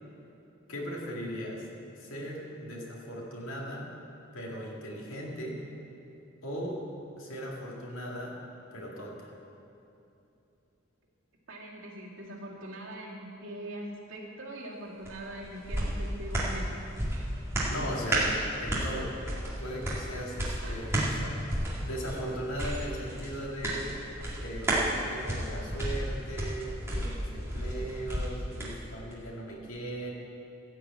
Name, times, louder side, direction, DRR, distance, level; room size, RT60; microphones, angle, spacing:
voice 1, 0.7-1.7 2.0-3.9 4.3-5.6 6.4-6.8 7.2-8.4 8.7-9.3 17.7-19.2 19.6-24.0 24.4-30.1, equal, 90° left, -2 dB, 2.2 m, -38 dB
voice 2, 11.5-16.7 20.6-20.9, right 1 dB, 80° right, -3 dB, 2.1 m, -42 dB
sound 1, 15.0-28.7 29.1-29.2, right 1 dB, 15° right, 2.1 m, -32 dB
15.0 x 4.9 x 8.2 m, 2.8 s
head